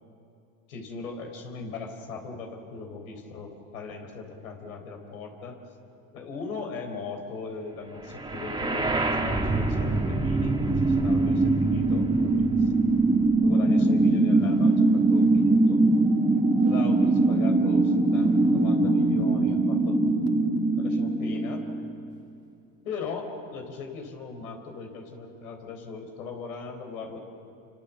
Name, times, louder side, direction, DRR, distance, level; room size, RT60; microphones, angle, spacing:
voice 1, 0.7-5.6 6.1-12.7 13.4-15.8 16.6-20.0 20.7-21.6 22.8-27.2, left 4 dB, 90° left, 3 dB, 4.2 m, -39 dB
sound 1, 8.2-22.2, right 2 dB, 10° right, 1.8 m, -22 dB
27.5 x 25.0 x 7.2 m, 2.6 s
supercardioid pair, 95°, 41 cm